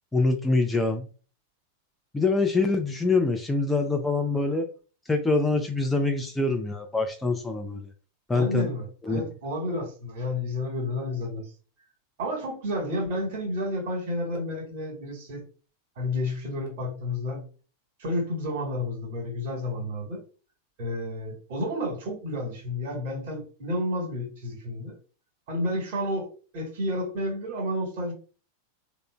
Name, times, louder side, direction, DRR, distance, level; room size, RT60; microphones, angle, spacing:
voice 1, 0.1-1.0 2.1-4.7 5.1-7.9 8.3-8.7 9.1-9.2, left 3 dB, 10° left, 4 dB, 0.3 m, -25 dB
voice 2, 8.3-11.5 12.2-15.4 16.0-17.4 18.0-20.2 20.8-24.9 25.5-28.1, left 1 dB, 50° right, 2 dB, 1.2 m, -31 dB
3.6 x 2.0 x 2.2 m, 0.37 s
figure-of-eight pair, 90°, 0 cm